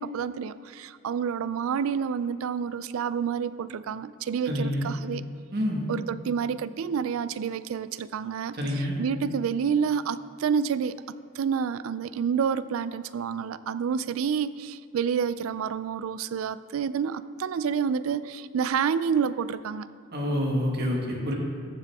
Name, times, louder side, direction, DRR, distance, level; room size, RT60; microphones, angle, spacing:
voice 1, 0.0-5.2 5.9-11.0 11.4-19.9, right 7 dB, 75° right, 15 dB, 0.3 m, -29 dB
voice 2, 4.5-4.9 5.5-5.9 8.5-9.0 20.1-21.3, equal, 45° right, -1 dB, 1.6 m, -27 dB
14.5 x 7.5 x 3.5 m, 2.2 s
head